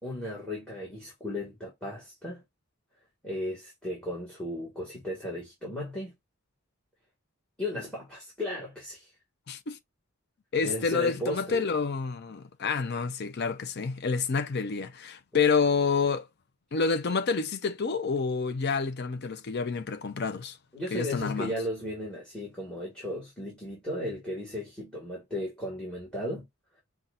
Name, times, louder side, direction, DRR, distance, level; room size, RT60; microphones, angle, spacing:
voice 1, 0.0-2.4 3.2-6.1 7.6-9.1 10.6-11.7 20.7-26.4, left 1 dB, 5° left, 1.6 m, -35 dB
voice 2, 9.5-9.8 10.5-16.3 16.7-20.6 20.9-21.5, left 5 dB, 50° left, 0.5 m, -28 dB
5.6 x 2.4 x 2.4 m
head